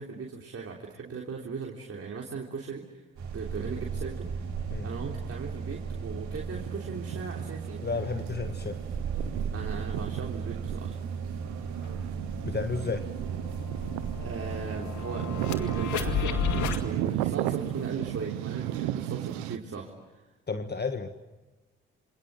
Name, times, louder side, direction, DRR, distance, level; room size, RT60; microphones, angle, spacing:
voice 1, 0.0-3.0 3.3-4.3 4.8-7.8 9.5-11.0 14.2-20.2, right 5 dB, 50° right, 0 dB, 3.5 m, -38 dB
sound 1, 3.2-17.0, right 6 dB, 70° right, 4.9 m, -36 dB
sound 2, 6.5-19.6, right 14 dB, 90° right, 1.0 m, -35 dB
voice 2, 7.8-8.8 12.4-13.1 20.5-21.1, left 4 dB, 35° left, 8 dB, 1.8 m, -32 dB
sound 3, 11.4-11.5 11.8-16.8, left 7 dB, 75° left, 2.4 m, -34 dB
27.0 x 27.0 x 7.7 m, 1.1 s
hypercardioid pair, 45°, 30 cm